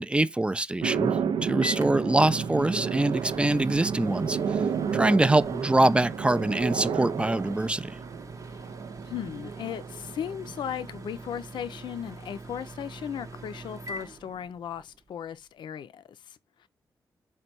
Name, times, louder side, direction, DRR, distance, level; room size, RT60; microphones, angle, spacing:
voice 1, 0.0-4.6 4.9-8.0, right 2 dB, 15° right, 0.4 m, -24 dB
sound 1, 0.8-11.2, right 7 dB, 70° right, 0.4 m, -32 dB
Microwave oven, 0.9-15.0, right 2 dB, 40° right, 0.7 m, -42 dB
voice 2, 9.0-16.7, left 9 dB, 65° left, 0.4 m, -37 dB
4.1 x 2.2 x 4.3 m
supercardioid pair, 45°, 8 cm